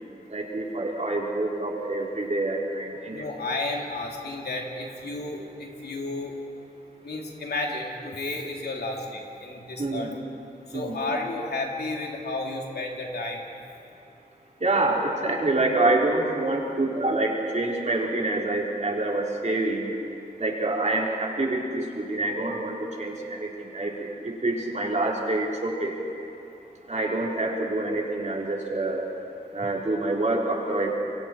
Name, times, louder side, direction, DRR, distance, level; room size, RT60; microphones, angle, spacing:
voice 1, 0.3-3.3 9.8-10.1 10.7-10.9 14.6-19.9 20.4-25.9 26.9-29.0 29.5-31.0, right 2 dB, 45° right, -2 dB, 4.4 m, -26 dB
voice 2, 3.1-6.3 7.0-10.1 10.7-13.5, left 2 dB, 80° left, 0 dB, 3.2 m, -32 dB
29.0 x 23.0 x 4.7 m, 2.8 s
cardioid pair, 50°, 17 cm